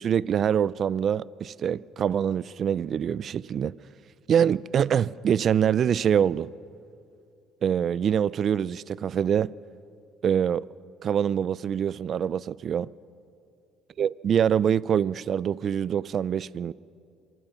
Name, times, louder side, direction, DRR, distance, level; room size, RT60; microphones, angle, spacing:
voice 1, 0.0-3.8 4.3-6.5 7.6-9.5 10.2-10.6 11.0-12.9 14.0-16.7, right 8 dB, 50° right, 0.4 m, -25 dB
25.5 x 20.5 x 5.8 m
cardioid pair, 105°, 0 cm